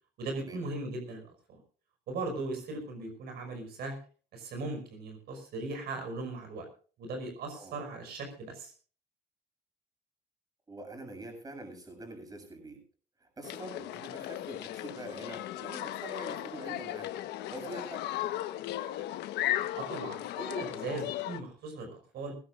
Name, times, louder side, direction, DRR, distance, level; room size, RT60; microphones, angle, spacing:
voice 1, 0.2-1.6 2.1-4.0 4.3-6.7 7.0-8.7 19.7-22.3, right 2 dB, 70° right, 4 dB, 5.6 m, -38 dB
voice 2, 10.7-12.8 13.2-17.1 17.5-18.1, right 2 dB, 20° right, 4 dB, 7.5 m, -45 dB
sound 1, 13.4-21.4, left 13 dB, 80° left, 1.3 m, -36 dB
21.0 x 16.5 x 2.6 m, 0.40 s
cardioid pair, 110°, 17 cm